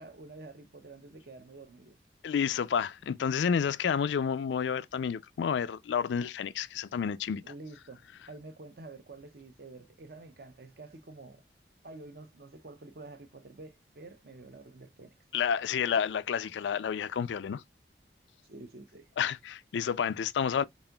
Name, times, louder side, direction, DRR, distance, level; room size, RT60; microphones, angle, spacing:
voice 1, 0.0-2.0 7.4-8.0 8.3-11.4 11.8-15.2 18.5-19.1, right 2 dB, 60° right, 0.7 m, -48 dB
voice 2, 2.2-7.4 15.3-17.6 19.2-20.6, left 7 dB, 90° left, 0.4 m, -30 dB
4.1 x 3.7 x 2.2 m
head